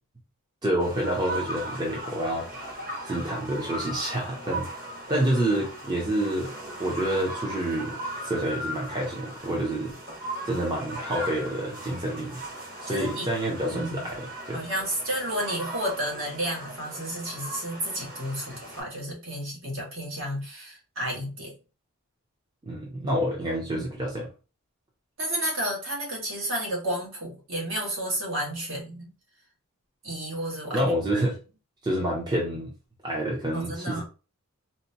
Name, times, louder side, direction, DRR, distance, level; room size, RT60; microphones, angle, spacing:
voice 1, 0.6-2.5 3.0-4.7 5.1-6.5 6.8-9.9 10.4-12.4 12.8-14.6 22.6-24.3 30.6-31.3 31.8-32.7 33.0-34.0, right 1 dB, 20° right, -2 dB, 0.6 m, -28 dB
sound 1, 0.8-18.8, right 1 dB, 40° right, 1.4 m, -38 dB
voice 2, 12.9-13.3 13.7-13.9 14.5-21.5 23.7-23.8 25.2-29.1 30.0-30.9 33.5-34.0, right 1 dB, 65° right, -3 dB, 1.5 m, -31 dB
4.1 x 2.2 x 2.8 m, 0.33 s
head